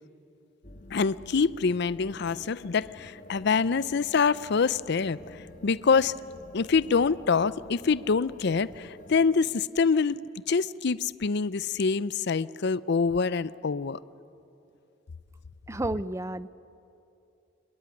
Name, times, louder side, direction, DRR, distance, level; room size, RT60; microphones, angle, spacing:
sound 1, 0.6-9.4, left 1 dB, 45° left, 1.4 m, -49 dB
voice 1, 0.9-6.1 6.5-10.2 10.5-14.0, left 5 dB, 60° left, 18 dB, 0.5 m, -25 dB
voice 2, 15.7-16.5, right 1 dB, 15° right, 16 dB, 0.5 m, -31 dB
26.5 x 21.5 x 9.9 m, 2.8 s
head